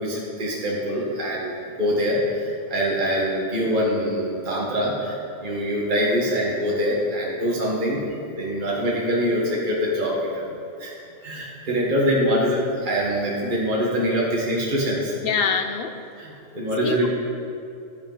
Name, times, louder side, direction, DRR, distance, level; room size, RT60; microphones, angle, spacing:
voice 1, 0.0-8.0 8.4-10.5 10.8-10.9 11.2-15.1 16.2-17.1, equal, 45° right, -4 dB, 1.6 m, -24 dB
voice 2, 15.2-15.9 16.8-17.1, left 6 dB, 55° left, 7 dB, 0.8 m, -24 dB
13.5 x 8.2 x 3.9 m, 2.7 s
omnidirectional pair, 1.2 m